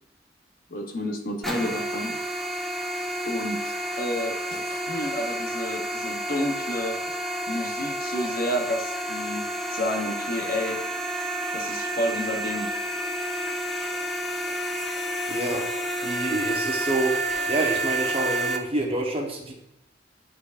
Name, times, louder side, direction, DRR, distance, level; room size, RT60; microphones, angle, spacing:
voice 1, 0.7-2.2 3.3-7.0 7.5-10.8 11.5-12.7 13.2-13.3 14.5-14.7, left 1 dB, 50° left, 3 dB, 0.9 m, -30 dB
sound 1, 1.4-18.6, right 1 dB, ahead, 0.5 m, -30 dB
voice 2, 15.3-15.6 16.0-19.5, right 2 dB, 30° right, 0 dB, 1.0 m, -27 dB
10.5 x 4.6 x 2.5 m, 0.85 s
head